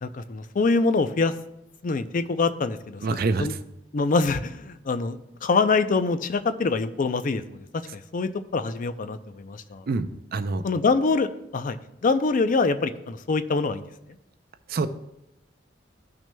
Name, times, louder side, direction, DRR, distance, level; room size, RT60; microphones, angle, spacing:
voice 1, 0.0-1.3 1.8-3.0 3.4-3.5 3.9-7.6 7.9-9.8 10.6-11.8 12.0-13.8, left 3 dB, 45° left, 12 dB, 0.4 m, -24 dB
voice 2, 3.0-3.6 9.9-10.6 14.7-14.9, right 3 dB, 55° right, 11 dB, 0.5 m, -26 dB
15.0 x 6.1 x 2.2 m, 0.86 s
head